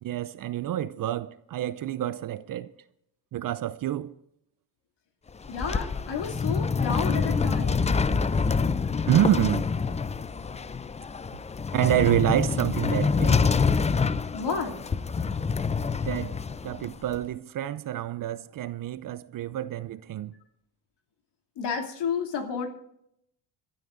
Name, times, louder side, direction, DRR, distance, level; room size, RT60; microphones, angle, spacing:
voice 1, 0.0-2.7 3.3-4.2 9.1-9.7 11.7-13.4 16.1-16.4 16.6-20.3, right 12 dB, 45° right, 0.6 m, -27 dB
sound 1, 5.3-17.2, left 5 dB, 15° left, 0.4 m, -26 dB
voice 2, 5.5-7.9 14.3-14.8 21.6-22.7, left 5 dB, 55° left, 2.9 m, -31 dB
27.0 x 13.0 x 2.6 m
supercardioid pair, 70°, 49 cm